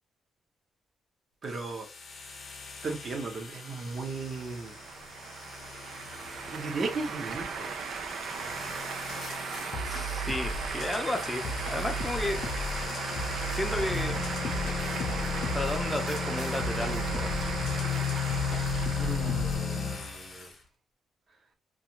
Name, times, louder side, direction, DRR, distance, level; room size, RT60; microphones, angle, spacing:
sound 1, 1.4-20.5, left 6 dB, 45° left, 0.8 m, -36 dB
voice 1, 1.4-1.9 2.8-4.7 6.5-7.7 18.9-20.5, right 3 dB, 45° right, 0.8 m, -36 dB
sound 2, 3.5-20.2, right 6 dB, 65° right, 0.4 m, -38 dB
sound 3, 9.1-19.6, equal, 70° left, 0.5 m, -36 dB
voice 2, 9.8-12.4 13.5-14.2 15.5-17.3, left 1 dB, 10° left, 0.6 m, -33 dB
2.5 x 2.4 x 2.9 m
cardioid pair, 135°, 0 cm